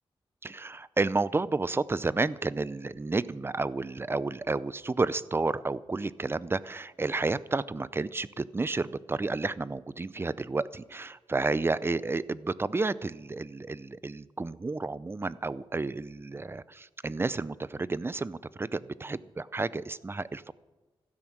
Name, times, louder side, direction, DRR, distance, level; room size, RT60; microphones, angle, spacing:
voice 1, 0.4-20.5, right 3 dB, 25° right, 18 dB, 0.5 m, -31 dB
16.0 x 12.5 x 6.1 m, 1.2 s
cardioid pair, 90°, 10 cm